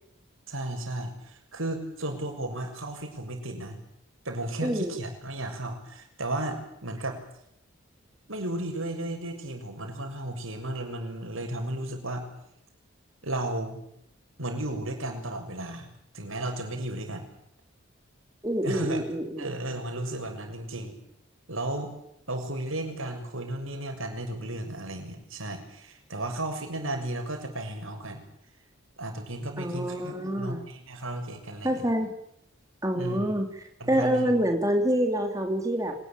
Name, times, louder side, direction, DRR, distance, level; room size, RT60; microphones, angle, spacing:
voice 1, 0.5-3.8 4.3-7.2 8.3-12.3 13.2-13.8 14.4-15.9 16.1-17.3 18.6-19.0 19.4-20.9 21.5-21.9 22.3-28.2 29.0-31.8 32.9-33.3 33.8-34.3, right 1 dB, 80° right, 5 dB, 6.9 m, -34 dB
voice 2, 4.6-5.0 18.4-19.5 29.6-30.6 31.6-32.1 32.8-36.0, equal, 15° right, 4 dB, 3.4 m, -27 dB
26.0 x 20.0 x 9.0 m, 0.75 s
head